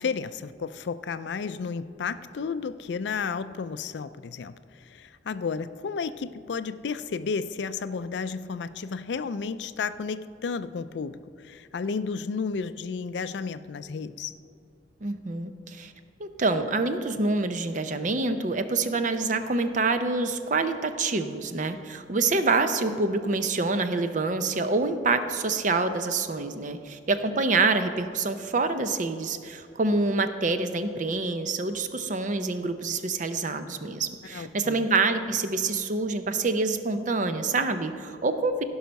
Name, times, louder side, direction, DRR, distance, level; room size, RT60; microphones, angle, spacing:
voice 1, 0.0-14.3 34.3-34.9, left 5 dB, 75° left, 14 dB, 0.4 m, -32 dB
voice 2, 15.0-15.9 16.2-38.6, right 3 dB, 45° right, 9 dB, 0.6 m, -26 dB
16.0 x 5.6 x 5.2 m, 2.4 s
head